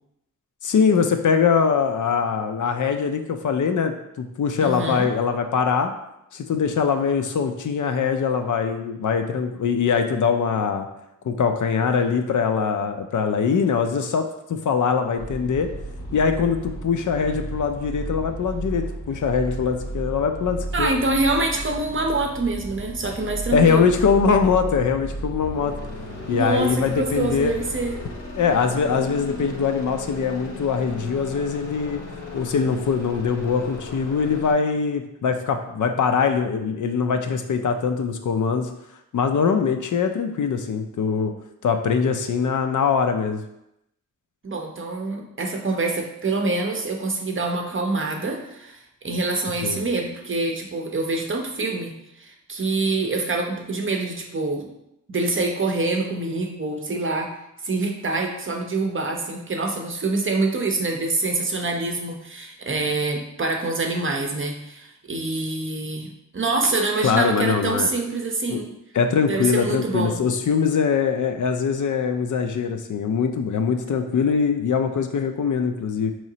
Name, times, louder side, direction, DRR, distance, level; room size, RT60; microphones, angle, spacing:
voice 1, 0.6-5.9 6.3-10.9 11.2-15.7 16.1-20.9 23.5-25.7 26.3-27.5 28.4-32.0 32.3-38.7 39.1-41.3 41.6-43.4 49.6-49.8 67.0-67.9 68.5-68.6 68.9-76.1, left 6 dB, 70° left, 6 dB, 0.5 m, -22 dB
voice 2, 4.6-5.1 20.7-23.8 26.3-28.0 44.4-54.7 55.1-57.3 57.6-68.7 69.2-70.2, right 3 dB, 40° right, 1 dB, 0.6 m, -25 dB
sound 1, 15.2-34.5, right 1 dB, 85° left, 1.1 m, -34 dB
4.9 x 3.1 x 2.7 m, 0.83 s
wide cardioid pair, 130°, 32 cm